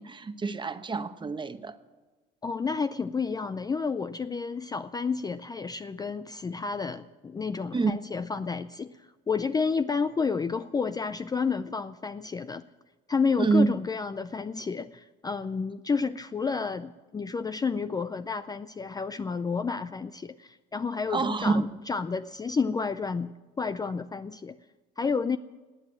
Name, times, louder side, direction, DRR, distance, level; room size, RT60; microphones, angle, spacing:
voice 1, 0.0-1.8 7.7-7.9 13.4-13.7 21.1-21.7, right 4 dB, 25° right, 1.0 m, -26 dB
voice 2, 2.4-12.6 13.1-24.6 25.0-25.4, left 5 dB, 20° left, 0.4 m, -30 dB
18.5 x 9.5 x 7.5 m
cardioid pair, 100°, 20 cm